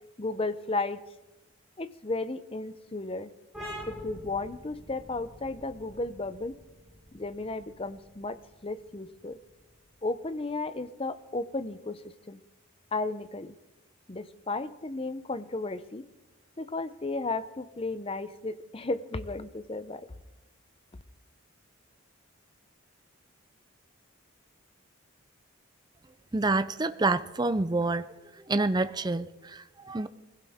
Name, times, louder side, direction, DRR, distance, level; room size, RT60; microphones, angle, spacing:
voice 1, 0.2-1.0 1.8-3.3 3.9-6.6 7.1-8.4 8.6-9.4 10.0-12.4 12.9-13.5 14.1-16.1 16.6-20.1, left 3 dB, 25° left, 13 dB, 0.6 m, -34 dB
sound 1, 3.5-10.8, equal, ahead, 5.5 m, -46 dB
voice 2, 26.3-28.1 28.3-30.1, right 3 dB, 20° right, 12 dB, 0.4 m, -28 dB
22.0 x 16.0 x 3.6 m, 1.0 s
head